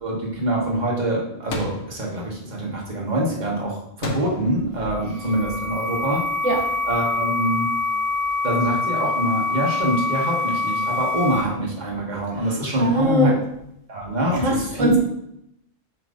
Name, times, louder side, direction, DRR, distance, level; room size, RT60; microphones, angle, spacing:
voice 1, 0.0-6.2 6.9-7.7 8.4-13.3 13.9-14.9, right 1 dB, 35° right, -3 dB, 1.5 m, -25 dB
sound 1, 1.5-2.0 4.0-4.7, left 2 dB, 75° left, 1.3 m, -30 dB
sound 2, 4.9-11.4, left 3 dB, 15° right, 0.9 m, -25 dB
voice 2, 12.8-13.3 14.4-15.0, right 1 dB, 75° right, -1 dB, 1.4 m, -20 dB
7.3 x 5.4 x 2.7 m, 0.78 s
omnidirectional pair, 1.3 m